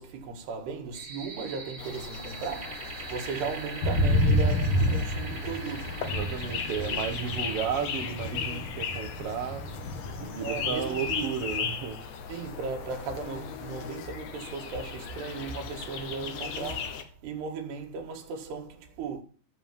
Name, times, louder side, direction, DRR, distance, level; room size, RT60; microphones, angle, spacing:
voice 1, 0.0-6.2 6.7-7.3 10.4-11.3 12.3-19.2, right 5 dB, 80° right, 3.9 m, -37 dB
sound 1, 0.9-7.6, right 3 dB, 25° right, 1.4 m, -42 dB
sound 2, 1.8-17.0, left 7 dB, 65° left, 1.8 m, -37 dB
sound 3, 3.8-11.7, left 1 dB, 40° left, 2.4 m, -29 dB
voice 2, 6.0-9.7 10.2-12.1, right 7 dB, 60° right, 1.5 m, -34 dB
14.0 x 7.5 x 7.4 m
omnidirectional pair, 4.7 m